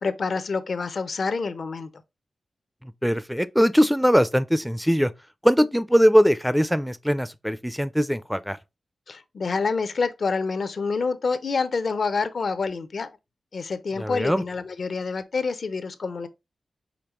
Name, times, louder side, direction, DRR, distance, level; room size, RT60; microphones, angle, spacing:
voice 1, 0.0-1.9 9.1-13.1 13.5-16.3, left 4 dB, 65° left, 0.6 m, -27 dB
voice 2, 2.8-5.1 5.4-8.6 14.0-14.4, equal, ahead, 0.4 m, -21 dB
5.2 x 3.1 x 3.0 m
cardioid pair, 70°, 0 cm